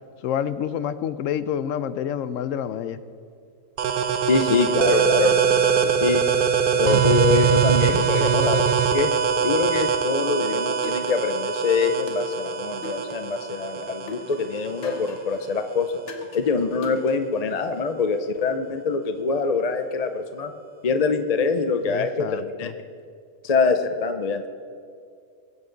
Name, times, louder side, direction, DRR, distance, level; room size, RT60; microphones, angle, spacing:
voice 1, 0.2-3.0 21.9-22.7, left 9 dB, 75° left, 14 dB, 0.9 m, -28 dB
sound 1, 3.8-15.2, right 7 dB, 50° right, 0.7 m, -22 dB
voice 2, 4.3-5.6 6.0-6.2 6.8-9.1 9.4-15.9 16.3-20.5 20.8-22.7 23.4-24.5, left 4 dB, 45° left, 8 dB, 0.5 m, -24 dB
sound 2, 10.8-11.6 12.1-13.5 14.1-15.5 16.1-17.5, left 1 dB, 60° left, 1.4 m, -39 dB
21.0 x 8.1 x 3.9 m, 2.3 s
omnidirectional pair, 1.4 m